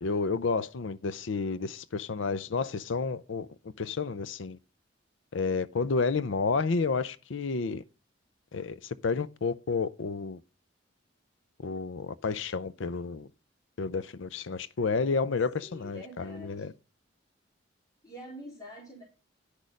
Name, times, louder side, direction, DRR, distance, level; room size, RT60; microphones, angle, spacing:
voice 1, 0.0-3.5 3.8-4.6 5.3-7.8 8.5-10.4 11.6-13.3 13.8-16.7, left 4 dB, 80° left, 0.5 m, -30 dB
voice 2, 15.6-16.7 18.0-19.0, equal, 20° left, 3.5 m, -46 dB
10.5 x 6.4 x 5.2 m
head